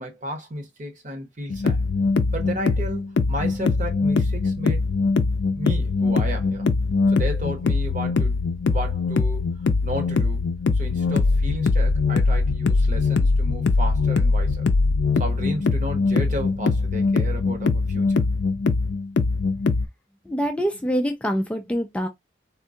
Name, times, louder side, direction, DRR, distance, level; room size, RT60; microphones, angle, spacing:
voice 1, 0.0-1.8 2.3-4.8 5.5-6.7 7.1-9.5 9.8-10.4 10.7-14.7 15.2-18.2, equal, 45° right, 1.1 m, -33 dB
sound 1, 1.5-19.9, left 3 dB, 75° left, 0.4 m, -22 dB
voice 2, 20.3-22.1, equal, 5° left, 0.3 m, -25 dB
3.6 x 2.2 x 2.6 m
head